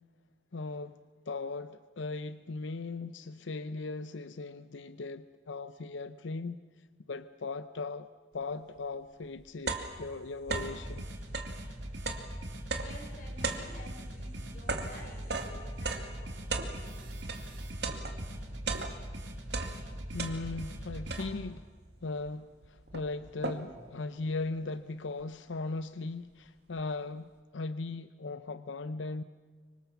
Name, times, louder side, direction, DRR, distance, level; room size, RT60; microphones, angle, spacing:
voice 1, 0.5-1.0 1.3-6.6 7.1-8.1 8.3-11.1 20.1-21.7 22.0-29.2, left 3 dB, 90° left, 0.7 m, -38 dB
sound 1, 8.8-8.9 9.2-10.9 11.2-17.5 17.8-19.2 19.5-20.7 21.1-21.6 22.3-22.4 22.6-23.9, right 3 dB, 65° right, 2.3 m, -37 dB
sound 2, 10.5-21.3, equal, 80° right, 4.0 m, -41 dB
voice 2, 12.7-16.4, left 1 dB, 45° left, 5.8 m, -52 dB
25.5 x 24.5 x 7.0 m
head